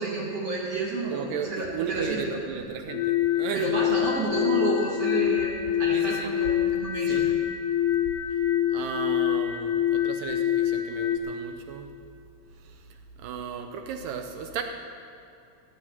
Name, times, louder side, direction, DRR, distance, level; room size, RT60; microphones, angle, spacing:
voice 1, 0.0-2.4 3.5-5.5 5.8-7.3, right 2 dB, 50° right, -5 dB, 2.1 m, -30 dB
voice 2, 1.1-3.7 5.9-6.3 7.1-7.2 8.7-11.9 13.2-14.6, right 7 dB, 75° right, 5 dB, 2.1 m, -35 dB
sound 1, 2.9-11.2, left 11 dB, 90° left, 1.7 m, -25 dB
16.5 x 5.7 x 9.3 m, 2.6 s
omnidirectional pair, 4.4 m